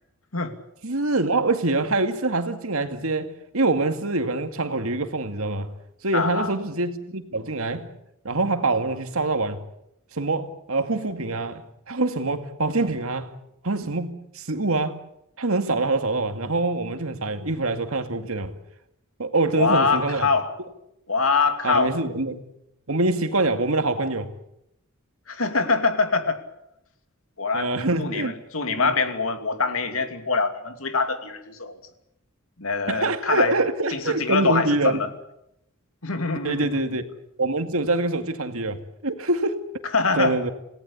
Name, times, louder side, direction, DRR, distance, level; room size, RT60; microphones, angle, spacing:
voice 1, 0.8-5.7 6.0-7.9 8.2-9.6 10.1-13.3 13.6-15.0 15.4-18.5 19.2-20.3 21.6-22.4 22.9-24.3 27.5-28.3 28.7-28.9 32.9-35.0 36.4-37.0 37.4-39.6 40.2-40.5, right 2 dB, 85° right, 2.2 m, -25 dB
voice 2, 6.1-6.5 19.6-20.5 21.1-21.9 24.0-24.1 25.3-26.4 27.4-27.7 28.0-31.8 32.6-33.5 33.9-35.1 36.0-36.7 39.9-40.4, left 4 dB, 80° left, 2.6 m, -24 dB
27.5 x 18.0 x 8.5 m
head